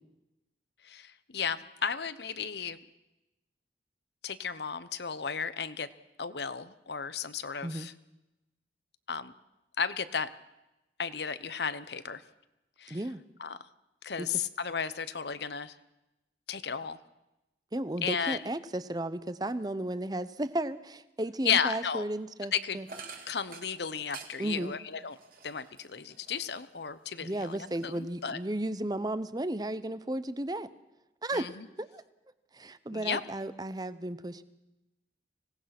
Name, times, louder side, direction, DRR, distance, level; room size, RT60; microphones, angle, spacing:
voice 1, 0.8-2.8 4.2-5.9 6.2-7.9 9.1-9.3 9.8-10.3 11.0-12.2 12.8-13.0 13.4-13.6 14.0-15.7 16.5-17.0 18.0-18.4 21.4-22.0 22.5-22.8 23.3-25.1 25.4-28.4 31.3-31.7 32.9-33.2, left 6 dB, 75° left, 14 dB, 1.0 m, -34 dB
voice 2, 12.9-13.2 14.2-14.5 17.7-22.9 24.4-24.7 27.2-30.7 31.2-31.5 31.8-32.0 32.5-34.4, right 1 dB, 20° right, 14 dB, 0.8 m, -34 dB
sound 1, 22.9-26.8 27.2-28.4, right 5 dB, 50° right, 2.3 m, -49 dB
25.5 x 18.0 x 6.0 m, 0.96 s
head